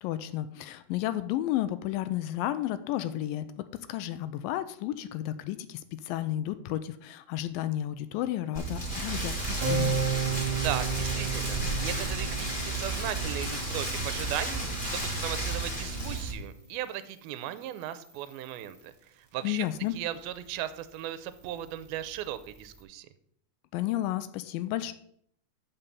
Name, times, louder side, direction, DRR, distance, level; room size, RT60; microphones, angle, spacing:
voice 1, 0.0-10.0 19.4-20.0 23.7-24.9, left 13 dB, 80° left, 13 dB, 2.2 m, -32 dB
Rain, 8.5-16.3, right 1 dB, 20° left, 1.3 m, -33 dB
sound 1, 8.8-22.8, right 3 dB, 45° right, 1.4 m, -45 dB
Keyboard (musical), 9.6-15.7, right 6 dB, 60° right, 1.4 m, -34 dB
voice 2, 10.5-14.6 14.9-19.7 20.0-23.1, right 12 dB, 90° right, 12 dB, 2.5 m, -37 dB
7.2 x 5.7 x 6.8 m, 0.67 s
omnidirectional pair, 4.2 m